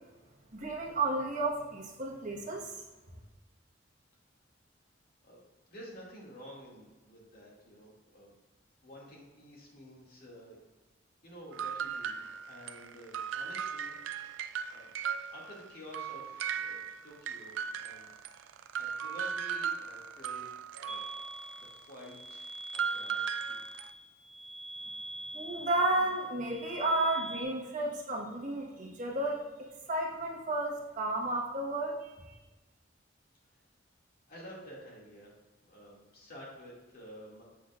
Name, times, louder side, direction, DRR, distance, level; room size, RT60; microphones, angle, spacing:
voice 1, 0.5-2.8 25.3-29.4 29.9-32.3, right 2 dB, 45° right, -2 dB, 1.2 m, -32 dB
voice 2, 5.7-8.3 8.8-10.6 11.2-13.9 14.2-14.3 14.7-14.9 15.3-18.1 18.8-20.5 20.8-21.0 21.6-23.6 34.3-35.3 35.6-37.4, equal, 55° left, -4 dB, 2.1 m, -50 dB
sound 1, 11.5-15.7 15.9-23.9, right 7 dB, 75° right, 0.3 m, -37 dB
sound 2, 20.9-27.4, right 1 dB, 30° left, 1.2 m, -44 dB
8.1 x 7.0 x 2.4 m, 1.2 s
head